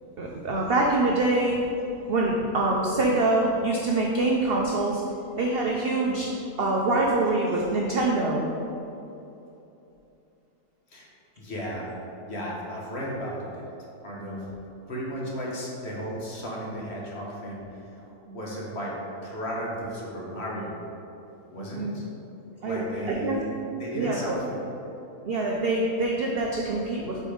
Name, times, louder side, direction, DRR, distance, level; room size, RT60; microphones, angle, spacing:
voice 1, 0.2-1.6 2.1-5.0 5.4-6.3 6.6-8.5 14.2-14.4 18.3-18.4 21.7-21.9 22.6-23.4 24.0-24.3 25.2-27.2, right 2 dB, 70° right, -1 dB, 0.5 m, -25 dB
voice 2, 11.4-11.9 12.2-13.7 14.0-14.5 14.9-19.0 19.2-20.8 21.5-22.1 22.6-24.6, equal, 45° left, -4 dB, 1.2 m, -34 dB
5.3 x 4.3 x 4.9 m, 2.8 s
omnidirectional pair, 1.7 m